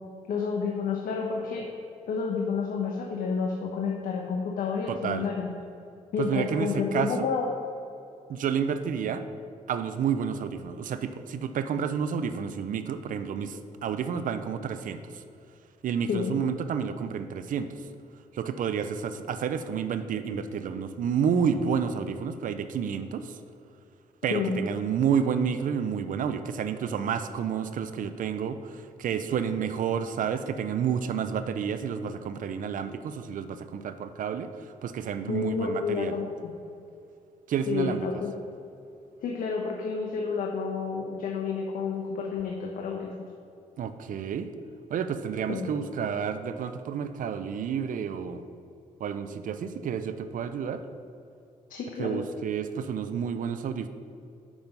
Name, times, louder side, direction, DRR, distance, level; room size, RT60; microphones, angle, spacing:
voice 1, 0.3-1.7 2.1-5.5 6.1-7.5 16.1-16.4 24.3-24.6 35.3-36.5 37.7-38.3 39.2-43.2 45.5-45.7 51.7-52.2, left 5 dB, 75° left, -1 dB, 0.9 m, -30 dB
voice 2, 4.9-5.3 6.2-7.3 8.3-9.2 9.7-15.2 15.8-17.9 18.3-23.4 24.2-36.2 37.5-38.1 43.8-44.5 44.9-48.4 49.0-50.8 52.0-53.9, right 7 dB, 70° right, 10 dB, 0.5 m, -30 dB
7.1 x 6.1 x 5.2 m, 2.6 s
cardioid pair, 70°, 14 cm